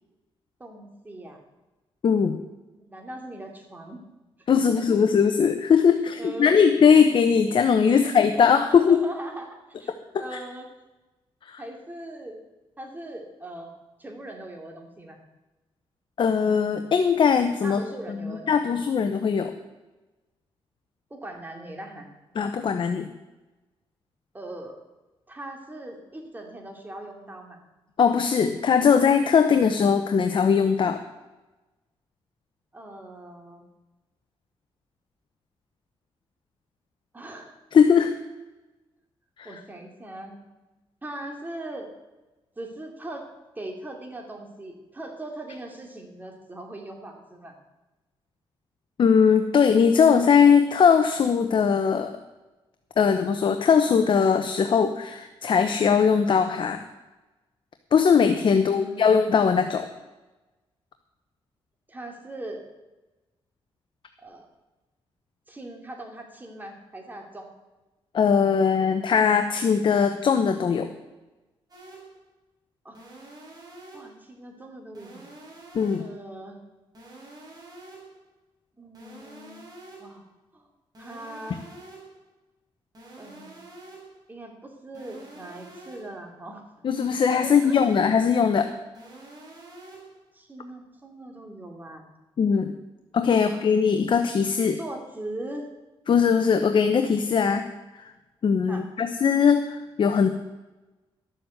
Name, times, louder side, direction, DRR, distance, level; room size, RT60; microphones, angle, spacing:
voice 1, 0.6-1.4 2.7-4.0 4.6-5.0 6.2-6.6 7.9-9.5 9.8-10.7 11.6-12.4 12.8-15.2 17.6-18.8 21.1-22.1 24.3-24.8 25.3-27.6 32.7-33.7 37.1-37.6 39.4-40.4 41.0-41.9 42.6-43.3 43.5-47.5 58.5-59.1 61.9-62.6 64.2-64.5 65.5-67.5 72.8-73.0 73.9-75.2 76.0-76.6 78.8-79.7 80.0-80.2 80.5-80.7 81.0-81.6 83.2-83.6 84.3-86.8 87.4-87.7 90.3-92.1 93.3-93.6 94.8-95.7 98.7-98.9, right 1 dB, 20° right, 2 dB, 2.7 m, -40 dB
voice 2, 2.0-2.4 4.5-9.0 11.5-11.6 16.2-17.8 18.2-19.5 22.3-23.1 28.0-31.0 37.7-38.1 39.4-39.5 49.0-52.1 53.0-56.8 57.9-59.9 68.1-70.9 75.7-76.0 86.8-88.7 92.4-92.7 93.1-94.8 96.1-97.7 98.4-100.3, left 6 dB, 55° left, 7 dB, 0.9 m, -20 dB
sound 1, 71.7-72.2 72.9-74.2 74.9-76.2 76.9-78.2 78.9-80.2 80.9-82.2 82.9-84.2 84.9-86.2 86.9-88.2 88.9-90.2, right 2 dB, 40° right, 5.0 m, -46 dB
12.5 x 7.6 x 7.9 m, 1.1 s
cardioid pair, 100°, 10 cm